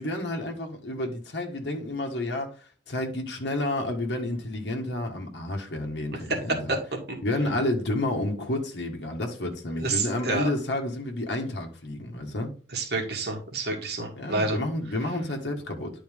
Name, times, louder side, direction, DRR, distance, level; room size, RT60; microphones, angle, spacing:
voice 1, 0.0-2.6 2.9-6.8 7.2-12.5 14.1-15.9, left 1 dB, 70° left, 1.5 m, -30 dB
voice 2, 9.8-10.5 12.7-14.6, right 3 dB, 60° right, 2.0 m, -29 dB
10.0 x 4.2 x 3.6 m
head